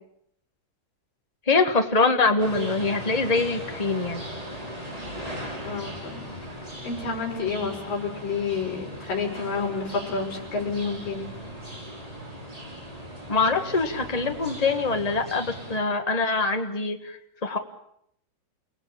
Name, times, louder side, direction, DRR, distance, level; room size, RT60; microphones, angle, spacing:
voice 1, 1.5-4.2 13.3-17.6, left 3 dB, 50° left, 5 dB, 0.4 m, -24 dB
sound 1, 2.4-15.8, equal, 10° right, 6.4 m, -38 dB
voice 2, 5.6-6.3 6.8-11.3, left 4 dB, 70° left, 0 dB, 7.2 m, -29 dB
30.0 x 19.0 x 8.6 m, 0.74 s
omnidirectional pair, 4.0 m